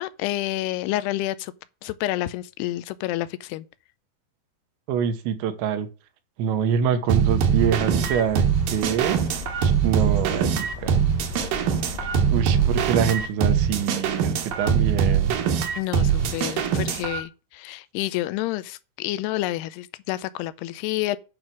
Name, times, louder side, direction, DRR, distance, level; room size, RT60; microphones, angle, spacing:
voice 1, 0.0-1.5 1.8-3.7 15.8-21.2, left 16 dB, 80° left, 2.4 m, -29 dB
voice 2, 4.9-5.9 6.4-9.3 9.6-11.0 12.3-15.3, right 7 dB, 85° right, 3.3 m, -25 dB
sound 1, 7.1-17.2, right 7 dB, 65° right, 2.5 m, -22 dB
sound 2, 7.5-13.3, left 3 dB, 55° left, 2.2 m, -37 dB
8.8 x 5.5 x 6.1 m
omnidirectional pair, 5.1 m